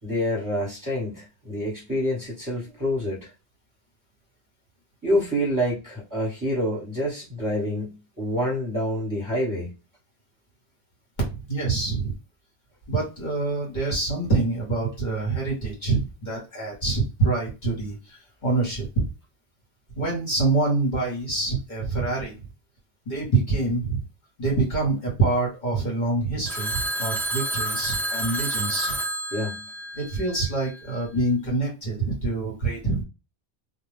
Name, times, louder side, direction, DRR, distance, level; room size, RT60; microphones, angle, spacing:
voice 1, 0.0-3.3 5.0-9.7 29.3-29.6, equal, 20° right, -6 dB, 1.3 m, -27 dB
voice 2, 11.2-12.1 12.9-19.1 19.9-22.4 23.1-24.0 24.4-28.9 29.9-33.0, right 3 dB, 45° left, -3 dB, 1.1 m, -26 dB
Telephone, 26.5-30.7, right 1 dB, 5° left, 0.3 m, -29 dB
2.3 x 2.2 x 3.2 m, 0.29 s
omnidirectional pair, 1.1 m